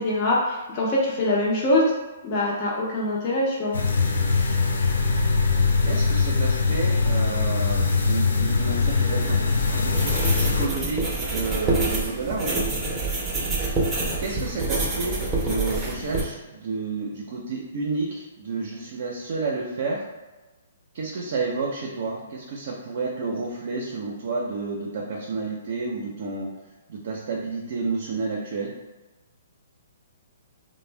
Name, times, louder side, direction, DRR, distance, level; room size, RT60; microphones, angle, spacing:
voice 1, 0.0-1.9 2.2-3.8, left 1 dB, 35° left, -5 dB, 0.6 m, -23 dB
sound 1, 3.7-10.7, left 4 dB, 85° left, 0.4 m, -22 dB
voice 2, 5.8-12.6 14.2-20.0 20.9-26.5 26.9-28.7, right 3 dB, 55° right, -2 dB, 0.5 m, -30 dB
sound 2, 8.3-16.2, right 2 dB, 15° right, 0.6 m, -27 dB
2.5 x 2.1 x 3.2 m, 1.2 s
hypercardioid pair, 150°, 0 cm